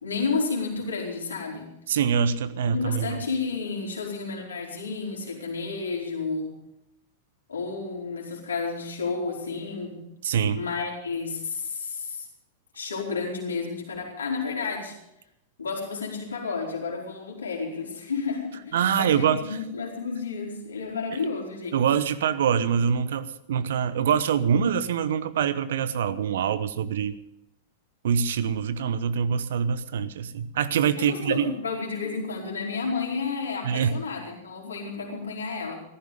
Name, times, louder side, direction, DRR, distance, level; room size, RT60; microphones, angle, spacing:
voice 1, 0.0-1.7 2.7-6.6 7.5-10.1 10.5-12.3 12.7-14.9 15.6-21.8 31.0-35.8, left 4 dB, 70° left, -1 dB, 4.7 m, -31 dB
voice 2, 1.9-3.2 10.2-10.6 18.7-19.5 21.7-27.2 28.0-31.6 33.6-34.0, right 7 dB, 60° right, 14 dB, 0.9 m, -24 dB
16.0 x 14.5 x 5.5 m, 0.82 s
figure-of-eight pair, 95°, 0 cm